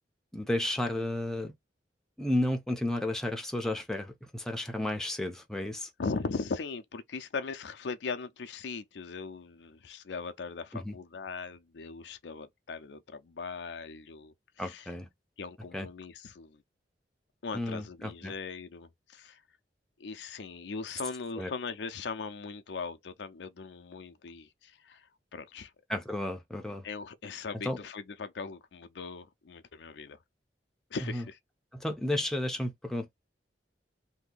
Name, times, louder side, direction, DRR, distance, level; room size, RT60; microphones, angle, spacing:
voice 1, 0.3-1.5 2.2-5.9 10.7-11.0 14.6-15.1 15.7-15.9 17.5-18.3 21.4-21.5 25.9-26.9 27.6-27.8 31.0-31.2 31.7-33.1, left 1 dB, 5° left, 0.6 m, -32 dB
voice 2, 6.0-14.9 15.4-16.6 17.4-19.4 20.0-25.7 26.8-30.2 30.9-31.4, left 4 dB, 75° left, 0.5 m, -39 dB
2.8 x 2.6 x 3.8 m
head